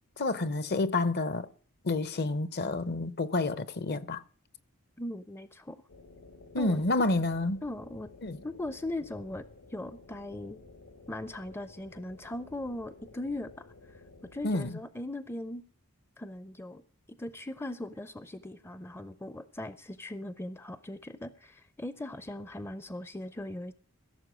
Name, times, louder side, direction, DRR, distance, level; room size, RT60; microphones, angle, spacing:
voice 1, 0.2-1.5 1.8-4.2 6.5-7.6 8.2-8.4 14.4-14.7, left 2 dB, 50° left, 0.7 m, -29 dB
voice 2, 5.0-5.8 6.6-6.8 7.6-8.1 8.4-10.6 11.1-13.7 14.3-15.6 16.2-16.8 17.1-23.7, left 1 dB, 10° left, 0.5 m, -39 dB
sound 1, 5.9-14.7, left 3 dB, 85° left, 2.3 m, -53 dB
16.0 x 7.1 x 6.2 m
head